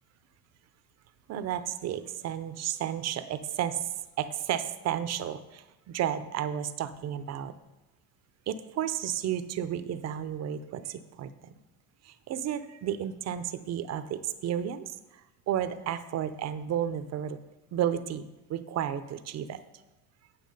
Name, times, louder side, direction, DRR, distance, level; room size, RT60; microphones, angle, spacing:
voice 1, 1.3-3.9 4.2-7.5 8.5-11.3 12.0-17.4 17.7-18.2 18.5-19.6, right 10 dB, 45° right, 12 dB, 0.6 m, -32 dB
9.4 x 5.9 x 5.3 m, 1.1 s
cardioid pair, 130°, 38 cm